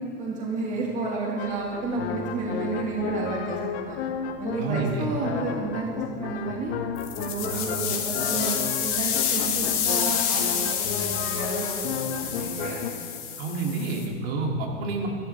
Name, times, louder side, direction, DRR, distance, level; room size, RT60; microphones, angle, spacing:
voice 1, 0.2-4.0 4.4-5.9 6.2-6.7 7.2-12.9 13.7-14.1, right 3 dB, 20° right, -2 dB, 1.7 m, -31 dB
sound 1, 1.4-12.9, left 7 dB, 60° left, 1.1 m, -33 dB
voice 2, 4.6-5.0 7.5-7.7 13.4-15.1, right 3 dB, 55° right, 0 dB, 2.6 m, -29 dB
sound 2, 7.0-14.1, left 8 dB, 35° left, 2.0 m, -28 dB
23.5 x 12.0 x 3.4 m, 2.2 s
supercardioid pair, 155°, 37 cm